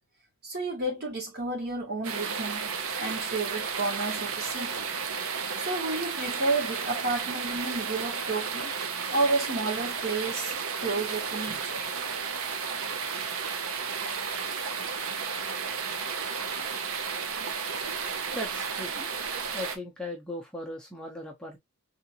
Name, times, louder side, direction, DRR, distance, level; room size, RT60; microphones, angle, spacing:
voice 1, 0.4-2.7 3.0-4.9 5.6-8.7 9.1-10.5 10.8-11.9, right 3 dB, 50° right, 1.7 m, -31 dB
sound 1, 2.0-19.8, right 6 dB, 75° right, 0.6 m, -33 dB
voice 2, 18.3-19.1 19.5-21.6, left 1 dB, 5° left, 0.6 m, -38 dB
3.7 x 2.5 x 2.7 m
head